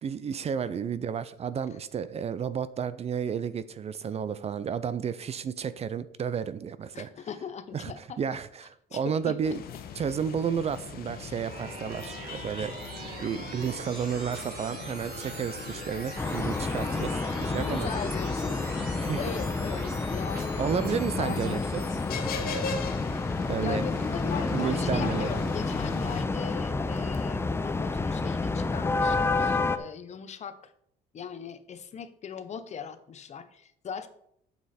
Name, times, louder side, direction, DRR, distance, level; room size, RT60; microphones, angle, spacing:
voice 1, 0.0-7.1 7.7-9.6 9.9-12.7 13.0-17.9 19.0-19.2 20.6-21.8 23.5-23.8 24.5-25.5, right 7 dB, 40° right, 15 dB, 0.5 m, -32 dB
voice 2, 6.9-8.2 8.9-9.5 17.6-18.6 19.2-20.7 21.2-21.6 23.6-30.7 31.1-34.1, left 7 dB, 40° left, 11 dB, 0.9 m, -39 dB
sound 1, 9.4-26.2, left 6 dB, 65° left, 1.1 m, -40 dB
sound 2, 11.5-22.4, right 3 dB, 70° right, 3.5 m, -43 dB
sound 3, 16.2-29.8, left 3 dB, 15° left, 0.6 m, -29 dB
8.1 x 6.9 x 4.3 m, 0.70 s
cardioid pair, 110°, 17 cm